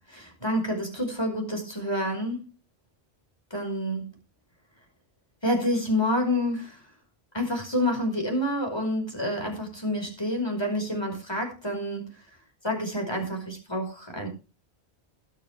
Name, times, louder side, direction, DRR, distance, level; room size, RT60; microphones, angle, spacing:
voice 1, 0.1-2.5 3.5-4.1 5.4-6.8 7.3-12.1 12.6-14.3, left 1 dB, 25° left, 2 dB, 5.3 m, -28 dB
21.0 x 7.3 x 3.5 m, 0.31 s
omnidirectional pair, 1.1 m